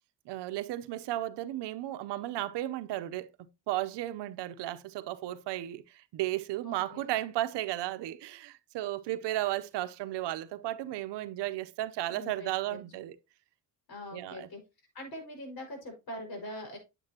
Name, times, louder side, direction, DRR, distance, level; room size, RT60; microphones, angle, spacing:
voice 1, 0.3-13.2 14.1-14.5, right 15 dB, 75° right, 0.8 m, -34 dB
voice 2, 6.6-7.0 12.1-12.5 13.9-14.6 14.9-16.8, left 1 dB, 55° left, 5.5 m, -42 dB
8.7 x 8.3 x 2.9 m
cardioid pair, 100°, 42 cm